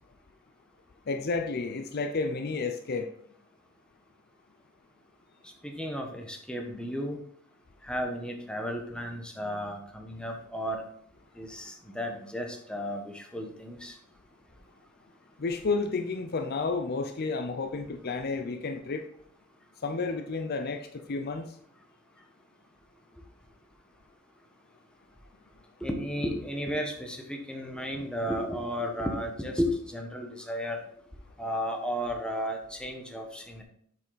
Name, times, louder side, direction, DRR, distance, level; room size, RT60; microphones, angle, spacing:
voice 1, 1.1-3.1 15.4-19.1 19.8-21.6, left 4 dB, 50° left, 0.5 m, -31 dB
voice 2, 5.4-7.2 7.8-10.8 11.3-14.0 25.8-30.8 31.4-33.6, equal, 5° left, 1.1 m, -33 dB
7.6 x 5.9 x 4.0 m
head